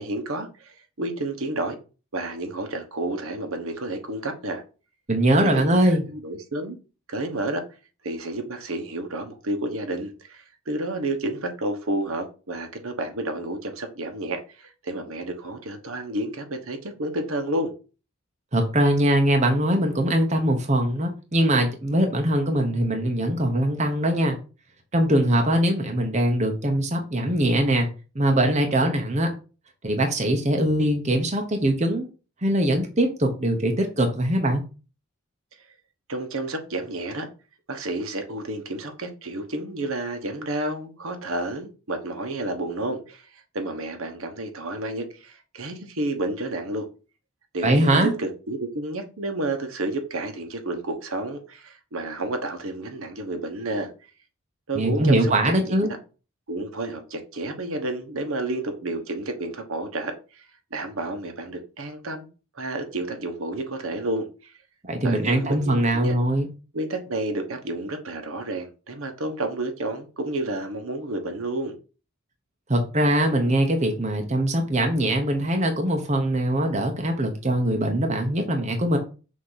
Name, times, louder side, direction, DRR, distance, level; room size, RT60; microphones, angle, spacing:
voice 1, 0.0-1.8 2.1-4.6 5.5-6.8 7.1-7.6 8.0-17.7 36.1-37.3 37.7-46.9 47.5-53.9 54.7-55.8 56.5-60.4 60.7-62.3 62.5-64.3 65.0-66.2 66.7-71.7, right 2 dB, 75° right, 1.2 m, -30 dB
voice 2, 5.1-6.0 18.5-24.4 24.9-27.9 28.1-29.3 29.8-32.1 32.4-34.6 47.6-48.1 54.7-55.9 64.8-66.5 72.7-79.0, right 1 dB, 30° right, 0.8 m, -22 dB
6.4 x 2.9 x 5.6 m
head